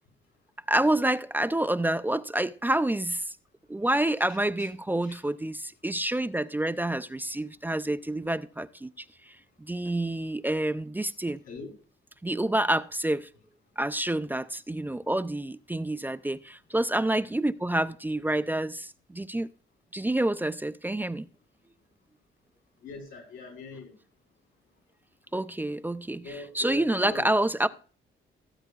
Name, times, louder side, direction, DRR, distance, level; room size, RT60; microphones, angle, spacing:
voice 1, 0.7-3.4 3.7-8.9 9.3-9.4 9.7-11.4 12.2-13.3 13.8-19.5 19.9-21.3 25.3-27.7, right 1 dB, 10° right, 0.4 m, -28 dB
voice 2, 4.3-4.7 5.0-5.2 11.5-11.7 22.8-23.9 26.2-27.3, left 3 dB, 85° left, 3.8 m, -42 dB
17.0 x 8.0 x 2.4 m
cardioid pair, 90°, 20 cm